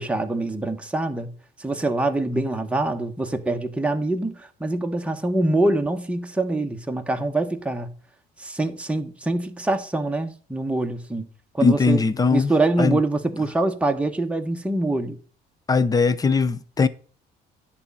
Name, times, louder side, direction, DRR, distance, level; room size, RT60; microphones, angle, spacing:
voice 1, 0.0-1.3 1.6-7.9 8.4-11.3 11.5-12.0 12.3-15.2, right 2 dB, 5° right, 1.2 m, -24 dB
voice 2, 11.6-12.5 12.8-13.0 15.7-16.9, left 4 dB, 20° left, 0.7 m, -20 dB
10.5 x 4.2 x 7.0 m
cardioid pair, 110°, 17 cm